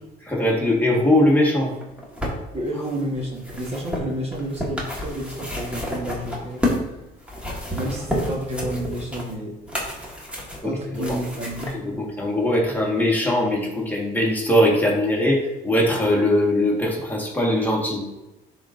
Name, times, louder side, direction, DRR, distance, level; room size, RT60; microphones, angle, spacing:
voice 1, 0.3-1.7 7.8-7.9 10.6-11.2 11.7-18.1, left 1 dB, 10° left, -2 dB, 1.5 m, -21 dB
sound 1, 1.7-6.9 7.2-11.7 12.5-12.6, left 1 dB, 5° right, 1.5 m, -30 dB
voice 2, 2.5-7.0 7.7-9.6 10.6-11.8, equal, 35° right, -1 dB, 1.4 m, -30 dB
11.0 x 3.8 x 2.6 m, 0.95 s
cardioid pair, 110°, 17 cm